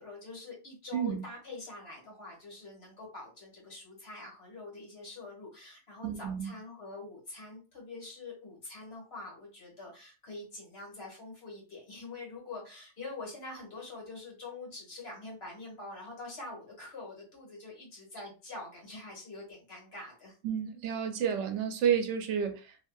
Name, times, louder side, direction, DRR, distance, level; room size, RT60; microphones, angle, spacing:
voice 1, 0.0-20.3, left 2 dB, 60° left, 1.6 m, -45 dB
voice 2, 6.0-6.5 20.4-22.8, right 8 dB, 80° right, 0.9 m, -30 dB
2.9 x 2.6 x 2.2 m
omnidirectional pair, 1.2 m